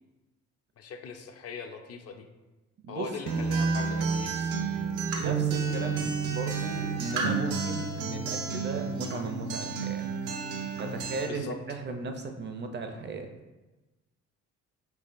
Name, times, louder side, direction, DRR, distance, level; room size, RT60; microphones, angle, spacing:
voice 1, 0.8-2.3 2.9-4.6 11.3-11.6, left 5 dB, 55° left, 5 dB, 0.5 m, -40 dB
Acoustic guitar, 3.3-11.2, right 5 dB, 85° right, 0.6 m, -30 dB
voice 2, 5.2-10.0 10.8-13.3, right 3 dB, 35° right, 5 dB, 0.4 m, -36 dB
4.7 x 2.8 x 2.5 m, 1.1 s
cardioid pair, 90°, 30 cm